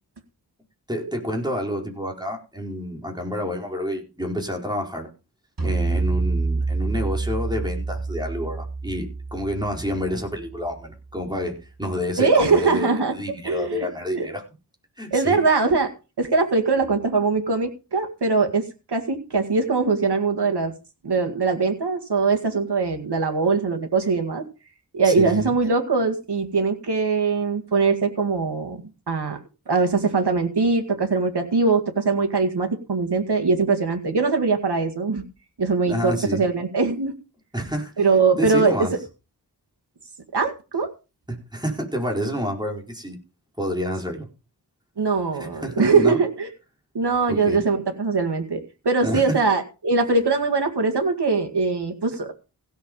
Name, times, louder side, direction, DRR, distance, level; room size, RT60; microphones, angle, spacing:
voice 1, 0.9-5.1 5.6-14.4 15.0-15.4 25.0-25.5 35.8-36.4 37.5-38.1 38.4-38.9 41.3-43.2 43.6-44.3 45.4-46.2 47.3-47.6 49.0-49.4, equal, 10° right, 1 dB, 4.6 m, -29 dB
sound 1, 5.6-11.0, right 3 dB, 60° right, 5.5 m, -27 dB
voice 2, 12.2-13.2 13.4-14.3 15.1-15.9 16.2-20.7 21.0-24.4 24.9-28.8 29.1-29.4 29.7-35.2 35.6-37.1 38.0-38.9 40.3-40.9 45.0-46.5 46.9-52.3, right 4 dB, 90° right, 5 dB, 2.0 m, -22 dB
16.5 x 6.7 x 5.4 m, 0.31 s
wide cardioid pair, 65°, 39 cm